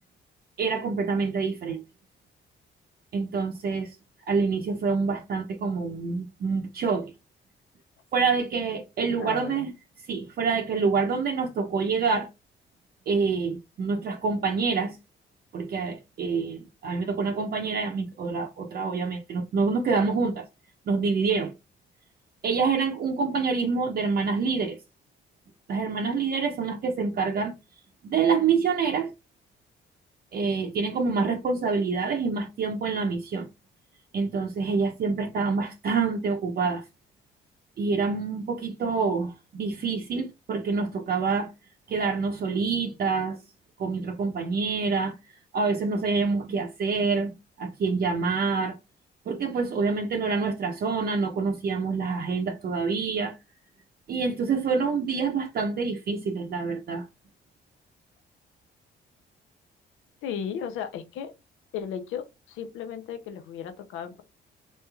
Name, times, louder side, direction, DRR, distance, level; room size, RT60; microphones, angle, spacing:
voice 1, 0.6-1.8 3.1-3.9 4.3-7.1 8.1-9.7 10.1-12.3 13.1-15.0 15.5-20.5 20.9-21.5 22.4-24.8 25.7-27.5 28.0-29.1 30.3-33.5 34.1-36.8 37.8-41.5 41.9-43.4 43.8-45.1 45.5-48.7 49.3-53.4 54.1-57.0, right 4 dB, 50° right, 0.6 m, -26 dB
voice 2, 9.1-9.7 60.2-61.3 61.7-64.2, left 8 dB, 90° left, 0.6 m, -35 dB
3.1 x 2.9 x 2.3 m
cardioid pair, 90°, 20 cm